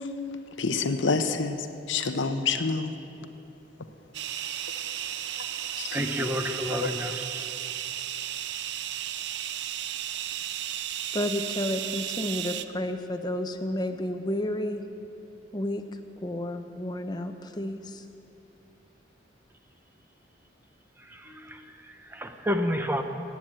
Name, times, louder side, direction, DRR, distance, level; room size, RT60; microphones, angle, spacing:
voice 1, 0.0-1.6 1.9-2.9 5.7-5.9, left 4 dB, 80° left, 0.8 m, -27 dB
sound 1, 4.1-12.6, right 11 dB, 65° right, 0.5 m, -34 dB
voice 2, 5.9-7.5 21.0-23.0, equal, 10° right, 0.7 m, -31 dB
voice 3, 11.1-14.8 15.5-15.8 16.2-18.0 21.3-21.6, left 1 dB, 20° left, 0.7 m, -31 dB
16.5 x 9.6 x 7.5 m
head